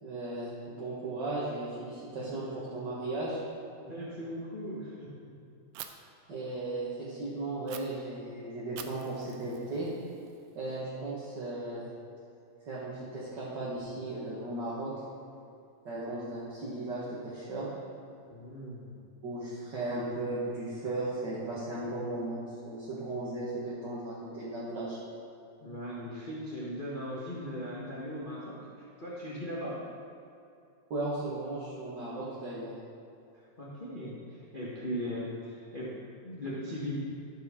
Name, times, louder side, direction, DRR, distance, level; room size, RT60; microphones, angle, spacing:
voice 1, 0.0-3.4 6.3-9.9 10.5-11.9 12.6-14.9 15.8-17.7 19.2-25.0 30.9-32.7, right 2 dB, 45° right, -9 dB, 1.7 m, -36 dB
voice 2, 2.2-2.5 3.8-5.3 18.3-19.0 25.6-29.8 33.6-36.9, equal, 85° left, -7 dB, 0.4 m, -39 dB
Fire, 5.7-5.9 7.7-7.8 8.8-10.7, right 11 dB, 85° right, 1.5 m, -47 dB
12.5 x 6.7 x 3.7 m, 2.5 s
omnidirectional pair, 3.4 m